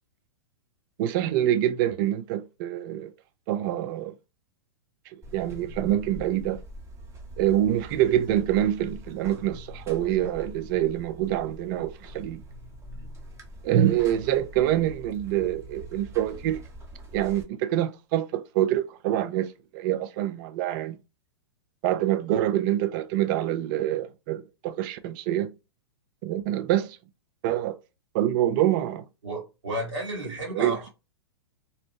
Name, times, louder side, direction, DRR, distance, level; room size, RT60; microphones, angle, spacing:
voice 1, 1.0-3.1 3.5-4.1 5.1-6.6 7.4-12.4 13.6-16.6 17.1-21.0 21.8-25.5 26.2-27.0 27.4-27.8 28.1-29.1 30.5-30.9, right 12 dB, 45° right, 0.4 m, -26 dB
Buzz, 5.2-17.4, right 1 dB, 20° right, 0.8 m, -43 dB
voice 2, 29.2-30.9, right 1 dB, 75° right, 1.6 m, -33 dB
2.7 x 2.0 x 2.8 m
hypercardioid pair, 115°, 15 cm